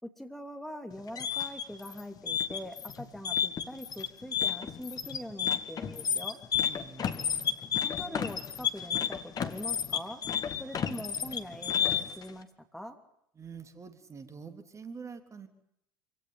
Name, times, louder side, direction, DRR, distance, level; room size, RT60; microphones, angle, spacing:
voice 1, 0.0-6.4 7.8-10.2 10.6-13.0, equal, ahead, 5 dB, 2.9 m, -43 dB
sound 1, 0.9-12.2, left 8 dB, 35° left, 2.2 m, -31 dB
voice 2, 6.7-7.6 13.4-15.5, right 5 dB, 25° right, 8 dB, 3.4 m, -46 dB
27.5 x 17.5 x 9.5 m, 0.74 s
figure-of-eight pair, 65°, 11 cm